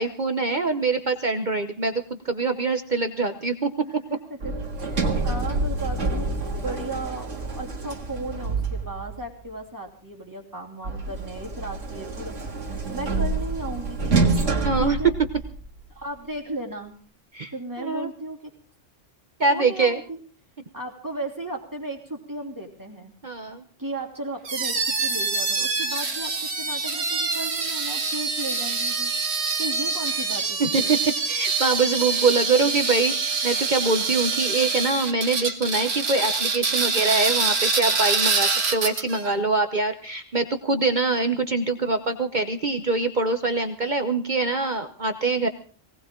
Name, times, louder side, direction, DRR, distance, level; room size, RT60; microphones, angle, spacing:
voice 1, 0.0-3.7 14.6-15.0 17.3-17.5 17.8-18.1 19.4-20.0 23.2-23.6 30.6-31.0 31.3-45.5, right 3 dB, 40° right, 7 dB, 1.1 m, -24 dB
voice 2, 3.8-4.5 4.8-12.3 12.9-14.4 14.8-15.1 15.9-17.0 17.5-18.5 19.5-20.2 20.7-23.1 23.8-29.1 29.6-30.9 32.5-32.9, right 2 dB, 15° right, 0 dB, 3.0 m, -35 dB
Sliding door, 4.4-9.2 10.8-15.8, right 3 dB, 75° right, 2.3 m, -27 dB
sound 1, 24.4-39.3, right 4 dB, 60° right, 1.6 m, -25 dB
19.0 x 18.5 x 3.8 m, 0.40 s
omnidirectional pair, 1.3 m